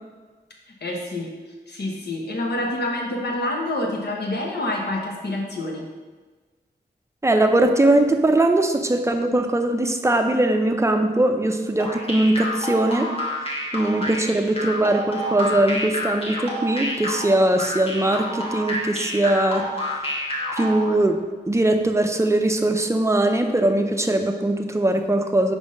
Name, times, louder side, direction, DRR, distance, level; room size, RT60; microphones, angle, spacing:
voice 1, 0.8-1.3 1.7-5.9, left 1 dB, 75° left, -1 dB, 1.1 m, -27 dB
voice 2, 7.2-13.1 13.7-19.6 20.5-21.2 21.5-25.5, right 1 dB, 15° right, 5 dB, 0.5 m, -20 dB
sound 1, 11.8-20.9, left 1 dB, 35° left, 1.1 m, -29 dB
5.2 x 3.6 x 5.3 m, 1.3 s
wide cardioid pair, 110°, 18 cm